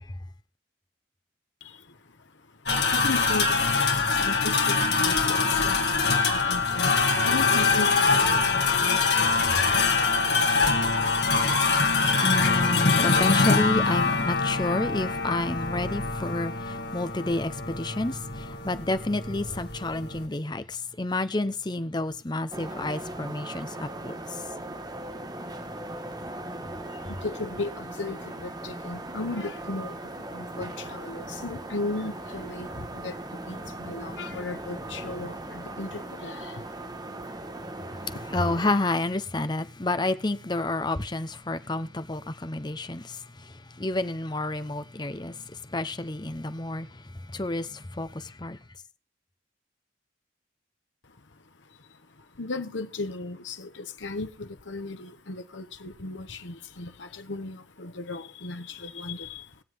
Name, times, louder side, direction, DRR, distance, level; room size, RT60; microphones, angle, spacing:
voice 1, 1.6-9.7 25.4-25.5 25.9-26.0 26.5-37.1 37.4-38.3 51.0-51.2 51.6-59.6, left 3 dB, 80° left, 1.1 m, -37 dB
sound 1, 2.7-20.2, left 4 dB, 60° left, 2.4 m, -24 dB
voice 2, 11.7-24.1 38.3-43.2 43.8-45.4 45.7-46.9 47.3-48.6, left 2 dB, 25° left, 0.8 m, -30 dB
sound 2, 22.5-38.7, right 1 dB, 20° right, 1.2 m, -38 dB
21.5 x 7.6 x 3.6 m
head